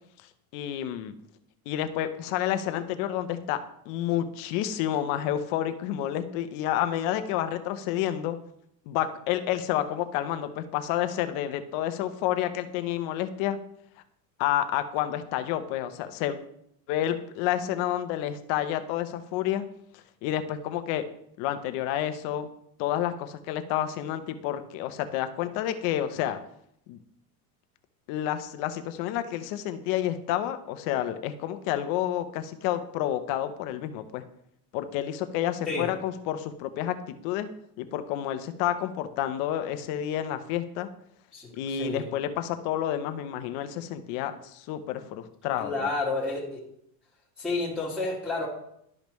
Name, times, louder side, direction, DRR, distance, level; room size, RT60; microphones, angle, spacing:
voice 1, 0.5-1.1 1.7-3.6 3.9-8.4 8.9-13.6 14.4-16.4 16.9-19.7 19.9-21.0 21.4-22.5 22.8-26.4 26.9-27.0 28.1-34.2 34.7-37.0 37.2-37.5 37.8-40.9 41.5-45.9, left 11 dB, 50° left, 9 dB, 0.8 m, -29 dB
voice 2, 41.3-42.1 45.6-46.6 47.4-48.5, left 3 dB, ahead, -10 dB, 1.7 m, -30 dB
12.0 x 5.1 x 3.1 m, 0.73 s
cardioid pair, 165°, 46 cm